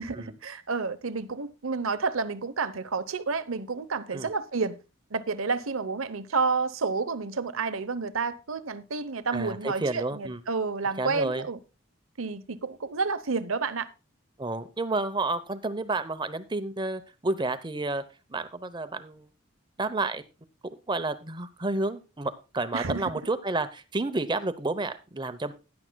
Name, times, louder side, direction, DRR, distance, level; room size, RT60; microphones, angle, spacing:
voice 1, 0.0-4.8 5.1-11.6 12.2-13.9 22.7-23.1, right 4 dB, 85° right, 0.9 m, -30 dB
voice 2, 9.3-10.4 11.0-11.5 14.4-18.0 18.3-19.3 19.8-20.2 20.9-25.5, right 2 dB, 20° right, 0.8 m, -30 dB
16.0 x 10.5 x 2.3 m
head